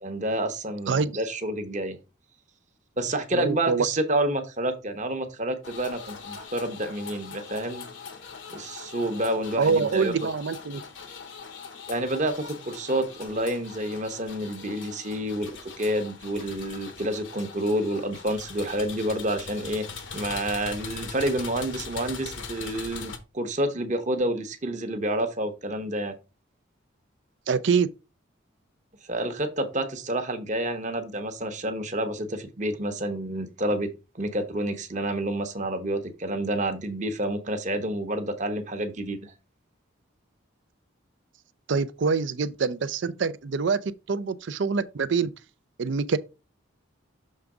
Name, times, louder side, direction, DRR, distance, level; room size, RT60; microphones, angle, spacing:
voice 1, 0.0-2.0 3.0-7.8 8.5-10.1 11.9-19.9 20.1-26.1 29.1-39.3, right 1 dB, 35° right, 1.0 m, -29 dB
voice 2, 3.3-3.9 9.6-10.8 27.5-27.9 41.7-45.3 45.8-46.2, right 5 dB, 65° right, 0.5 m, -25 dB
sound 1, 5.6-23.2, left 5 dB, 70° left, 1.0 m, -41 dB
6.6 x 3.5 x 4.8 m
head